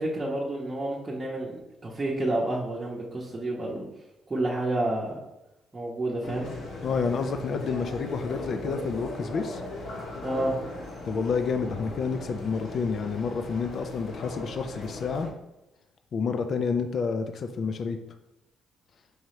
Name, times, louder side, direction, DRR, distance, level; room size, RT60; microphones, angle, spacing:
voice 1, 0.0-3.8 4.3-5.2 5.7-6.5 10.2-10.5, right 1 dB, 25° right, -5 dB, 0.8 m, -29 dB
sound 1, 6.2-15.3, left 2 dB, 75° left, 1.1 m, -38 dB
voice 2, 6.8-9.6 11.0-15.3 16.1-18.0, left 5 dB, 55° left, 7 dB, 0.4 m, -29 dB
4.7 x 2.7 x 3.1 m, 0.92 s
cardioid pair, 90°, 0 cm